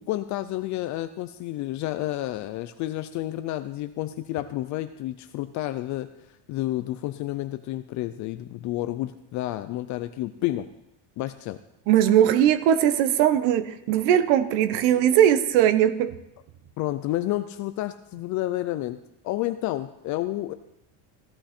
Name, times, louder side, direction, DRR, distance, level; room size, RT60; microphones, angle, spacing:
voice 1, 0.0-6.1 6.5-10.7 11.2-11.6 16.8-19.0 19.2-20.5, left 15 dB, 40° left, 11 dB, 0.4 m, -30 dB
voice 2, 11.9-16.1, right 10 dB, 75° right, 13 dB, 1.1 m, -20 dB
15.5 x 14.0 x 4.3 m, 0.86 s
cardioid pair, 175°, 47 cm